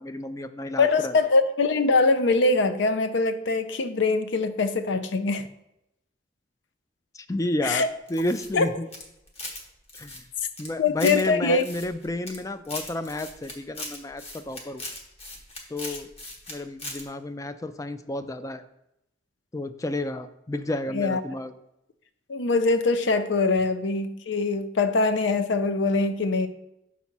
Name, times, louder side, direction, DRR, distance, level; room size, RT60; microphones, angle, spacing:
voice 1, 0.0-1.2 7.1-8.9 10.0-10.2 10.6-14.8 15.7-16.1 16.5-18.6 19.5-21.5, left 1 dB, 15° left, 12 dB, 0.3 m, -31 dB
voice 2, 0.8-5.5 7.6-7.9 8.5-8.7 10.8-11.6 20.9-21.2 22.3-26.5, left 3 dB, 70° left, 10 dB, 0.6 m, -23 dB
sound 1, 8.1-9.6 9.9-11.2 11.6-12.4 12.6-16.5 16.8-17.0, left 2 dB, 35° left, 1.2 m, -39 dB
6.1 x 4.2 x 5.9 m, 0.84 s
head